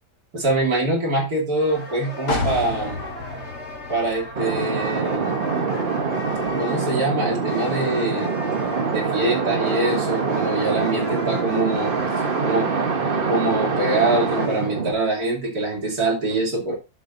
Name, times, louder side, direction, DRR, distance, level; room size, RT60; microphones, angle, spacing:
voice 1, 0.3-3.0 3.9-5.4 6.6-8.3 8.9-11.9 12.4-12.7 13.3-16.8, right 2 dB, 60° right, -1 dB, 3.4 m, -24 dB
sound 1, 1.6-14.7, left 2 dB, 40° left, 2.5 m, -37 dB
sound 2, 2.3-6.0 6.4-6.5, left 2 dB, 70° left, 3.2 m, -31 dB
sound 3, 4.4-14.9, right 5 dB, 35° right, 1.1 m, -25 dB
11.0 x 7.5 x 2.6 m, 0.26 s
omnidirectional pair, 1.9 m